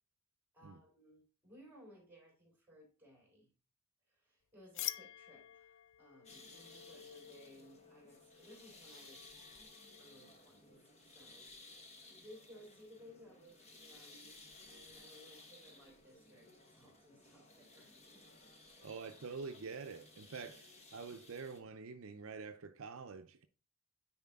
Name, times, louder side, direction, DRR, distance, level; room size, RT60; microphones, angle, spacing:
voice 1, 0.5-3.5 4.1-9.3 10.0-10.8 11.1-11.5 12.1-14.4 14.7-18.3 18.6-18.9, equal, 10° right, 3.8 m, -60 dB
sound 1, 4.7-10.3, left 13 dB, 60° left, 0.4 m, -49 dB
sound 2, 6.2-21.6, left 2 dB, 30° left, 1.2 m, -58 dB
voice 2, 18.8-23.5, right 5 dB, 60° right, 0.5 m, -47 dB
9.6 x 4.2 x 3.5 m
head